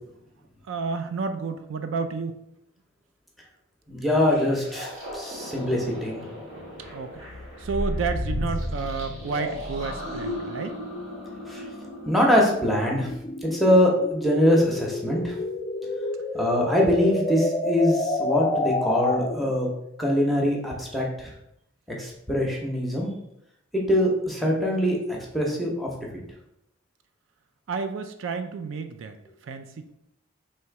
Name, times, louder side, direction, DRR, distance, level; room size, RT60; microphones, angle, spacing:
voice 1, 0.7-2.4 6.9-7.3 7.6-10.8 27.7-29.2 29.4-29.9, right 4 dB, 65° right, 7 dB, 0.4 m, -31 dB
voice 2, 3.9-6.2 11.5-11.7 12.1-13.1 13.4-15.4 16.3-19.7 20.0-21.3 22.0-23.1 23.7-25.0 25.3-25.9, left 1 dB, ahead, -2 dB, 0.7 m, -23 dB
sound 1, 4.3-12.8, equal, 85° right, 1.4 m, -34 dB
sound 2, 8.7-19.6, left 2 dB, 20° left, 0.3 m, -31 dB
3.2 x 2.9 x 4.5 m, 0.78 s
head